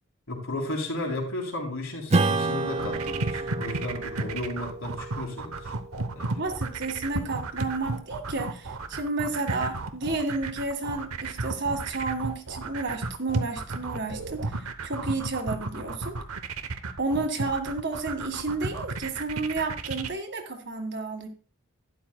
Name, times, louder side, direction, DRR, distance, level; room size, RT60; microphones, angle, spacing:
voice 1, 0.3-5.7 6.1-6.4, left 2 dB, 70° left, 1 dB, 3.5 m, -34 dB
Strum, 2.1-7.0, right 3 dB, 30° right, 0.5 m, -30 dB
sound 1, 2.7-20.1, right 3 dB, 80° right, 0.9 m, -33 dB
voice 2, 6.3-16.2 17.0-21.3, right 3 dB, 50° right, 5 dB, 1.8 m, -31 dB
12.0 x 11.0 x 2.3 m, 0.35 s
head